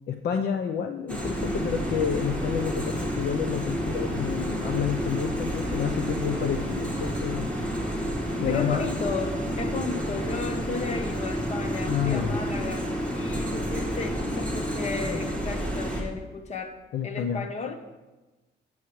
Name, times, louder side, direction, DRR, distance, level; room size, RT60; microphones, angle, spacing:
voice 1, 0.1-7.5 8.3-8.8 11.9-12.4 16.9-17.5, left 8 dB, 55° left, 6 dB, 0.6 m, -29 dB
sound 1, 1.1-16.0, equal, 5° left, 1.6 m, -30 dB
voice 2, 8.4-16.8 17.0-17.8, left 4 dB, 35° left, 6 dB, 0.9 m, -34 dB
15.5 x 7.2 x 3.1 m, 1.2 s
cardioid pair, 160°, 20 cm